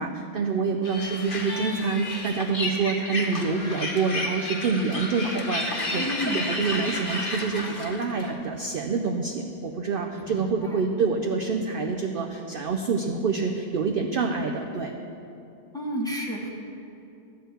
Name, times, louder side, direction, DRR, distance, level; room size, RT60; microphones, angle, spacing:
voice 1, 0.0-6.0 6.3-14.9, right 4 dB, 60° right, 3 dB, 0.6 m, -27 dB
sound 1, 0.8-8.3, left 2 dB, 40° left, 1.2 m, -32 dB
voice 2, 5.9-6.5 10.1-10.9 15.7-16.5, equal, 5° left, -2 dB, 1.1 m, -31 dB
13.0 x 4.6 x 7.9 m, 2.7 s
omnidirectional pair, 1.5 m